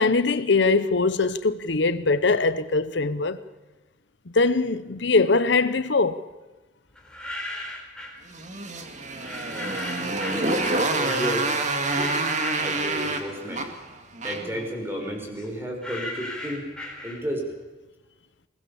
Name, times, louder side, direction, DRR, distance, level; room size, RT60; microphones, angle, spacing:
voice 1, 0.0-3.4 4.3-6.2, left 3 dB, 80° left, 0.9 m, -22 dB
sound 1, 7.0-8.2 9.2-13.4 13.8-17.5, left 1 dB, 5° left, 4.2 m, -37 dB
Motorcycle, 8.3-14.6, right 3 dB, 40° right, 2.2 m, -27 dB
voice 2, 10.3-11.5 11.9-12.2 12.6-13.7 14.2-16.7 17.0-17.5, equal, 15° right, 5.2 m, -32 dB
22.0 x 19.0 x 7.1 m
head